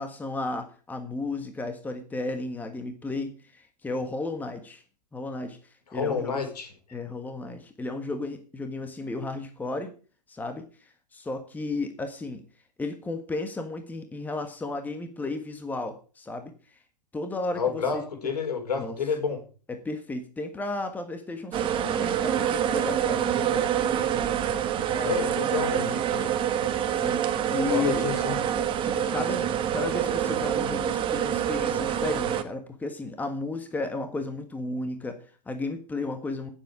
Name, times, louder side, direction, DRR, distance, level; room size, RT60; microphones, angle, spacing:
voice 1, 0.0-4.8 5.1-6.5 6.9-9.9 10.3-12.4 12.8-16.8 17.1-18.0 18.8-18.9 19.7-23.7 25.7-26.3 26.9-28.0 28.8-36.5, left 2 dB, 10° left, 7 dB, 1.5 m, -34 dB
voice 2, 5.9-6.7 17.5-19.4 24.9-26.3 27.6-28.4, left 6 dB, 70° left, 5 dB, 4.5 m, -29 dB
sound 1, 21.5-32.4, right 9 dB, 25° right, 1.4 m, -26 dB
16.5 x 7.6 x 5.0 m, 0.38 s
hypercardioid pair, 115°, 21 cm